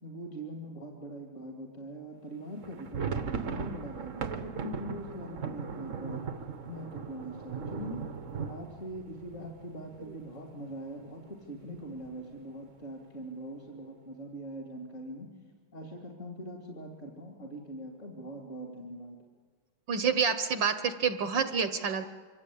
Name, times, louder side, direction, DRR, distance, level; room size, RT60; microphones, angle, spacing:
voice 1, 0.0-6.2 6.7-8.0 8.5-15.3 15.7-19.2, right 1 dB, 30° left, 1 dB, 3.0 m, -42 dB
sound 1, 2.6-10.3 10.6-10.7 11.0-11.2 11.8-12.3, right 6 dB, 45° right, 1.2 m, -38 dB
voice 2, 19.9-22.1, right 6 dB, 60° right, 9 dB, 1.6 m, -28 dB
25.5 x 25.5 x 8.6 m, 1.5 s
omnidirectional pair, 2.4 m